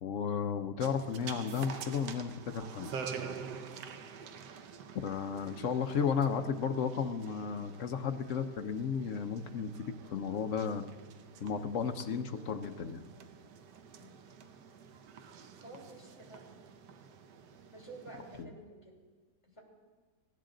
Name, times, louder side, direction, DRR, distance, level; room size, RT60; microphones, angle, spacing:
voice 1, 0.0-3.0 4.9-10.8 11.4-13.0 18.4-18.5, left 6 dB, 55° left, 8 dB, 0.9 m, -34 dB
sound 1, 0.8-18.4, right 6 dB, 80° right, 1.5 m, -48 dB
voice 2, 15.6-16.6 17.7-18.9 19.4-19.6, right 2 dB, 15° left, -2 dB, 3.4 m, -51 dB
18.5 x 16.5 x 3.9 m, 1.5 s
omnidirectional pair, 1.8 m